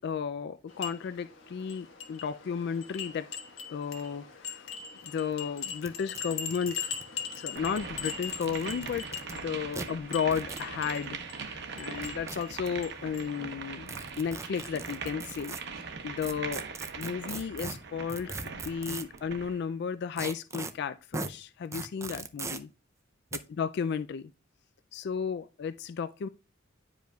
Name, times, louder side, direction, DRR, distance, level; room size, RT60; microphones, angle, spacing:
voice 1, 0.0-3.3 3.7-4.6 5.0-6.9 7.4-16.6 17.0-22.7 23.6-24.3 24.9-26.3, left 6 dB, 60° left, 0.3 m, -34 dB
sound 1, 0.7-13.5, left 7 dB, 80° left, 1.4 m, -41 dB
sound 2, 5.0-5.1 5.3-5.4 5.8-5.9 6.1-7.6 8.2-9.3 9.7-9.9 10.3-10.7 11.8-12.7 13.9-15.6 16.2-19.2 20.2-20.7 21.1-21.3 21.7-22.6 23.3-23.4, right 3 dB, 15° right, 0.4 m, -39 dB
sound 3, 7.5-19.6, right 5 dB, 60° right, 0.9 m, -41 dB
10.5 x 5.1 x 2.3 m
head